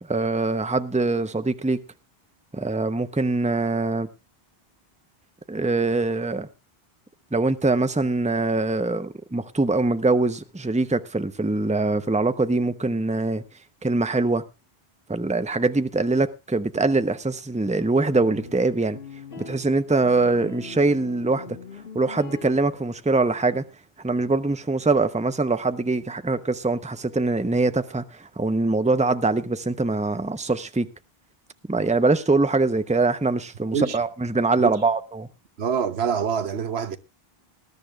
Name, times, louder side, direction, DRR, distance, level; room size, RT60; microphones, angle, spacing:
voice 1, 0.0-1.8 2.5-4.1 5.5-6.5 7.3-13.4 13.8-14.4 15.1-19.0 19.4-21.6 21.9-23.6 24.0-30.9 31.7-35.3, right 3 dB, 10° right, 0.8 m, -23 dB
sound 1, 18.1-23.0, left 5 dB, 70° left, 2.1 m, -41 dB
voice 2, 35.6-37.0, right 7 dB, 85° right, 1.3 m, -25 dB
20.5 x 12.5 x 2.5 m
omnidirectional pair, 1.0 m